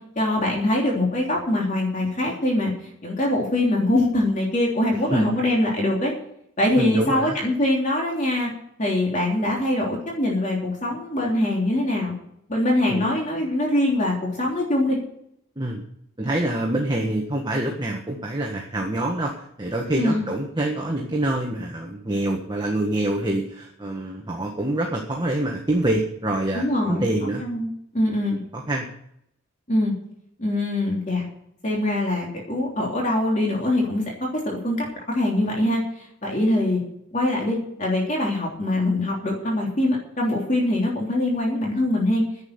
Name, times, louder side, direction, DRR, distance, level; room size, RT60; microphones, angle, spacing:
voice 1, 0.1-6.1 6.6-8.5 8.8-12.1 12.5-15.0 19.9-20.3 26.5-27.0 27.4-28.4 29.7-29.9 30.4-31.3 31.6-34.0 34.3-36.8 37.1-42.2, left 1 dB, 35° left, -2 dB, 3.3 m, -23 dB
voice 2, 6.8-7.4 12.8-13.1 15.6-15.8 16.2-19.3 19.6-27.4 28.5-28.9, right 1 dB, 20° right, 0 dB, 1.5 m, -26 dB
10.5 x 8.4 x 9.7 m, 0.73 s
head